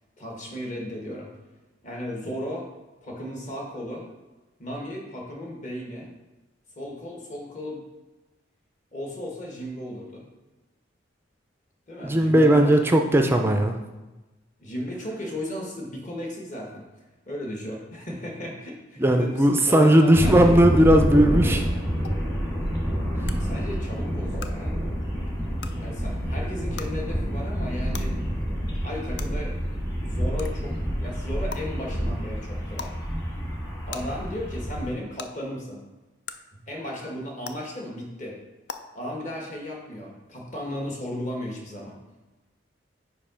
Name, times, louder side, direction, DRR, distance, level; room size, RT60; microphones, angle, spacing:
voice 1, 0.2-1.3 1.8-2.7 3.0-4.1 4.6-6.1 6.8-7.8 8.9-10.3 11.9-13.3 14.6-16.8 17.3-20.6 22.6-22.8 23.4-24.8 25.8-28.2 28.8-29.6 30.0-33.0 33.9-35.8 36.5-38.4 38.9-42.0, equal, 40° left, -1 dB, 1.3 m, -35 dB
voice 2, 12.0-13.8 19.0-21.7, right 1 dB, 10° right, 4 dB, 0.3 m, -18 dB
sound 1, 20.1-34.9, equal, 20° left, 1.3 m, -28 dB
sound 2, 22.0-22.1 23.3-23.4 24.4-24.5 25.6-25.7 26.8-26.9 27.9-28.0 29.2-29.3 30.4-30.5 31.5-31.6 32.7-32.9 33.9-34.0 35.2-35.3 36.2-36.3 37.4-37.5 38.7-38.8, left 7 dB, 60° left, 0.4 m, -36 dB
5.4 x 4.7 x 5.0 m, 1.1 s
head